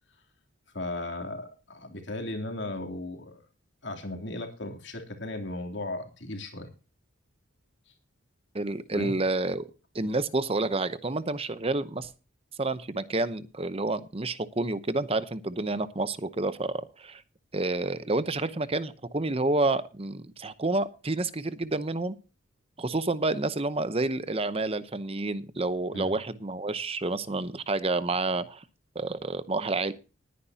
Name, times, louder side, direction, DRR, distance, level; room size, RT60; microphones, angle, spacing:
voice 1, 0.7-3.4 3.8-6.7 8.9-9.2 25.9-26.2, left 2 dB, 60° left, 5 dB, 3.1 m, -36 dB
voice 2, 8.5-9.7 9.9-12.1 12.6-17.2 17.5-22.1 22.8-28.6 28.9-29.9, right 2 dB, 30° right, 13 dB, 0.8 m, -29 dB
20.0 x 9.9 x 2.8 m, 0.33 s
head